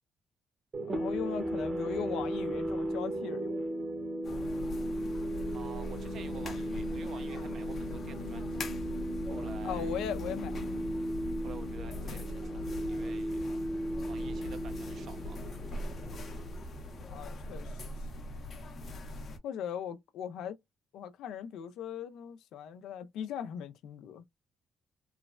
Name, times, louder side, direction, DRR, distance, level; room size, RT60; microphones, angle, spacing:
sound 1, 0.7-17.0, right 1 dB, 35° right, 0.9 m, -36 dB
voice 1, 0.8-3.6 9.6-10.8 17.1-17.7 19.4-20.5 20.9-24.2, left 8 dB, 85° left, 0.5 m, -39 dB
sound 2, 4.2-19.4, left 1 dB, 50° left, 0.7 m, -41 dB
voice 2, 5.5-8.7 9.3-10.1 11.3-13.5 14.1-16.2, right 6 dB, 65° right, 0.6 m, -50 dB
3.1 x 2.1 x 2.4 m
cardioid pair, 90°, 0 cm